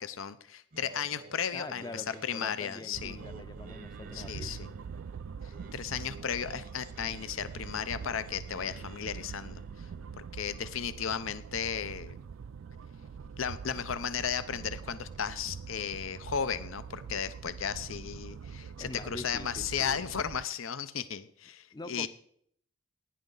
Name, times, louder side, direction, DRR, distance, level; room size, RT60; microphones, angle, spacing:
voice 1, 0.0-3.2 4.1-4.7 5.7-9.9 10.3-12.2 13.4-22.1, left 7 dB, 85° left, 13 dB, 0.7 m, -35 dB
Singing, 0.7-11.8, right 2 dB, 45° right, 0.7 m, -52 dB
voice 2, 1.5-4.5 18.8-20.0 21.7-22.1, left 2 dB, 20° left, 12 dB, 0.5 m, -44 dB
sound 1, 2.9-20.5, right 6 dB, 85° right, 0.4 m, -44 dB
16.5 x 10.0 x 3.9 m, 0.64 s
head